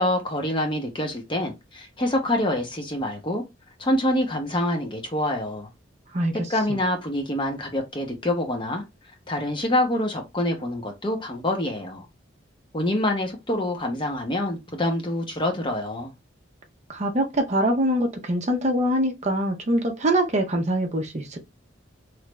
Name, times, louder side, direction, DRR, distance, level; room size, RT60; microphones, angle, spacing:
voice 1, 0.0-3.4 3.8-5.7 6.3-8.8 9.3-12.0 12.7-16.1, left 1 dB, 25° left, 0.7 m, -26 dB
voice 2, 16.9-21.4, right 1 dB, 35° right, 0.6 m, -24 dB
3.2 x 2.3 x 3.0 m
head